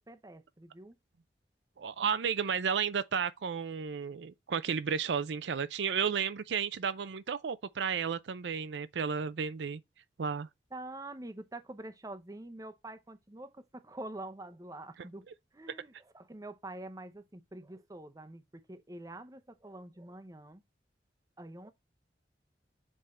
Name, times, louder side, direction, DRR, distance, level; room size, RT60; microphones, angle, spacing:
voice 1, 0.1-1.0 10.7-15.2 15.5-20.6 21.4-21.7, right 2 dB, 20° right, 0.7 m, -46 dB
voice 2, 1.8-9.8 10.2-10.5, right 6 dB, 80° right, 0.5 m, -33 dB
7.7 x 3.7 x 4.2 m
head